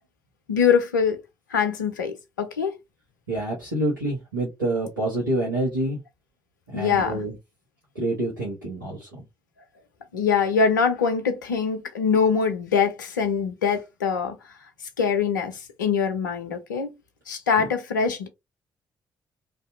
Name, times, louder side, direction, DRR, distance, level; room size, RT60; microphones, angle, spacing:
voice 1, 0.5-1.2 1.5-2.8 6.7-7.2 10.1-14.4 15.0-16.9 17.3-18.3, left 6 dB, 80° left, 0.5 m, -23 dB
voice 2, 3.3-6.0 6.7-7.3 7.9-9.1 17.6-17.7, right 1 dB, 85° right, 0.7 m, -27 dB
2.5 x 2.3 x 2.5 m
figure-of-eight pair, 40°, 10 cm